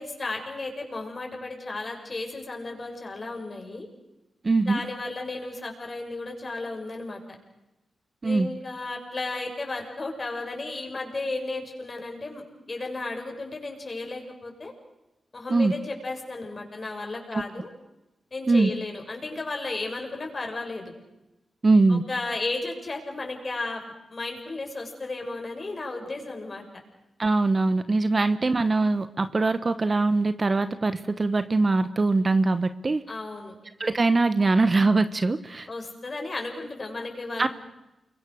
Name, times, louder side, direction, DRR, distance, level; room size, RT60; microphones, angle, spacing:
voice 1, 0.0-3.9 4.6-7.2 8.2-14.7 15.3-17.7 18.3-20.9 21.9-23.8 24.1-26.6 28.1-28.2 33.1-33.5 35.7-37.5, left 2 dB, 35° left, 2 dB, 6.9 m, -34 dB
voice 2, 4.4-4.8 8.2-8.5 15.5-15.7 17.3-17.4 18.5-18.7 21.6-22.0 27.2-33.0 33.8-35.7 37.4-37.5, right 3 dB, 35° right, 12 dB, 1.1 m, -22 dB
29.0 x 23.5 x 6.5 m, 0.97 s
cardioid pair, 85°, 0 cm